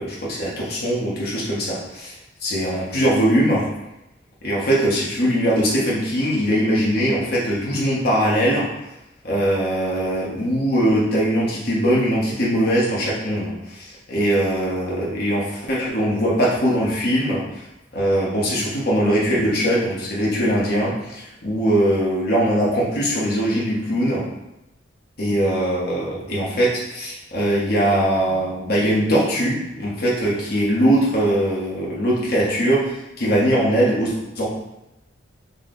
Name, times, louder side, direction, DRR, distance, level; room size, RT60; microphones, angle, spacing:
voice 1, 0.0-2.1 2.4-3.7 4.4-8.7 9.2-17.6 17.9-24.2 25.2-34.5, equal, 55° left, -6 dB, 1.2 m, -21 dB
5.4 x 2.2 x 3.9 m, 0.93 s
head